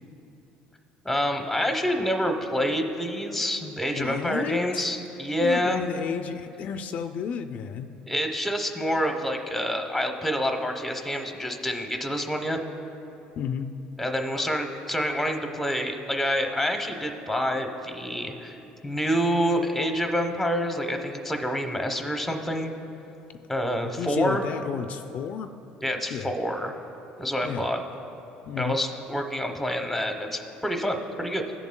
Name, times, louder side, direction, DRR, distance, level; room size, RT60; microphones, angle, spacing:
voice 1, 1.0-5.8 8.1-12.6 14.0-22.7 23.5-24.4 25.8-26.7 27.2-27.8 28.6-31.5, equal, 5° left, 4 dB, 0.8 m, -27 dB
voice 2, 3.9-4.8 5.4-7.9 13.4-13.7 24.0-25.5 26.1-26.3 27.4-27.7 28.5-28.8, left 7 dB, 50° left, 7 dB, 0.3 m, -32 dB
17.5 x 7.0 x 2.2 m, 2.9 s
cardioid pair, 125°, 3 cm